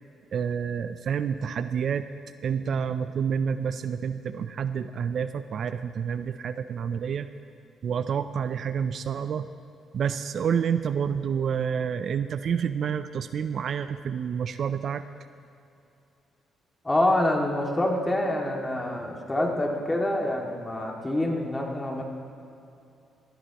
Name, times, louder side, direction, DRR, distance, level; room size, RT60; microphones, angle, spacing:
voice 1, 0.3-2.1 2.4-7.3 7.8-9.5 9.9-15.0, right 7 dB, 60° right, 11 dB, 0.5 m, -28 dB
voice 2, 16.8-22.0, left 1 dB, 15° left, 0 dB, 2.1 m, -26 dB
19.0 x 14.0 x 3.0 m, 2.8 s
cardioid pair, 90°, 0 cm